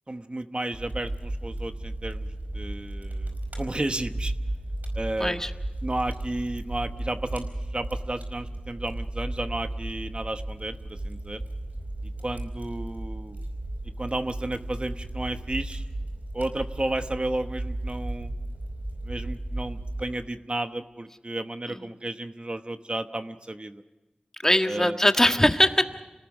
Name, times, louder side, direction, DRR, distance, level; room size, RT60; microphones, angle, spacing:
voice 1, 0.1-4.3 4.9-5.4 5.8-11.4 12.0-13.4 14.0-15.8 16.3-18.3 19.0-23.8 24.7-25.0, right 1 dB, 40° right, 8 dB, 1.0 m, -33 dB
Fire, 0.7-20.0, right 1 dB, 70° right, 4.8 m, -34 dB
voice 2, 5.2-5.5 21.7-21.9 24.4-26.0, left 1 dB, 15° left, 6 dB, 1.5 m, -22 dB
27.5 x 18.5 x 6.2 m, 1.1 s
wide cardioid pair, 45°, 3 cm